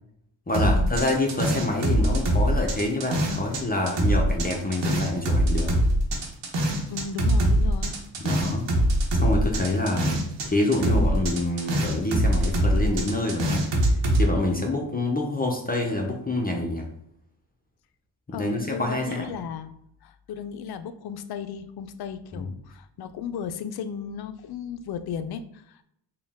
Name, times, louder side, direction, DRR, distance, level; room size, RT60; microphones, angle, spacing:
voice 1, 0.5-5.7 8.2-8.7 9.1-10.2 10.4-13.6 13.9-16.9 18.4-19.3 22.3-22.5, left 2 dB, 20° left, 0 dB, 0.6 m, -27 dB
sound 1, 0.5-3.6 3.9-10.5 10.7-14.2, right 1 dB, 85° right, 0.9 m, -23 dB
voice 2, 6.9-8.0 18.3-19.7 20.0-25.8, left 7 dB, 60° left, 10 dB, 0.5 m, -35 dB
4.1 x 2.3 x 3.5 m, 0.73 s
cardioid pair, 60°, 43 cm